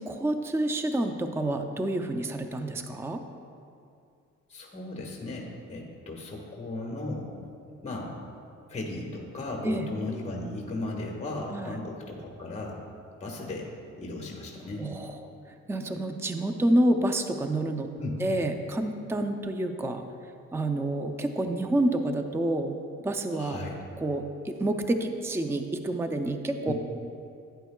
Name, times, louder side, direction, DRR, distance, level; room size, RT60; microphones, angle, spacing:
voice 1, 0.0-3.2 9.6-9.9 11.5-11.8 14.8-15.3 15.7-17.9 18.2-20.0 20.5-22.8 23.0-23.6 24.0-26.7, right 1 dB, 10° right, 6 dB, 0.4 m, -28 dB
voice 2, 4.5-7.3 7.8-8.2 8.7-12.8 13.2-13.7 14.0-14.9 18.0-18.2 23.3-23.8 26.6-26.7, left 2 dB, 20° left, -1 dB, 1.4 m, -36 dB
11.0 x 9.0 x 2.3 m, 2.4 s
cardioid pair, 90°, 30 cm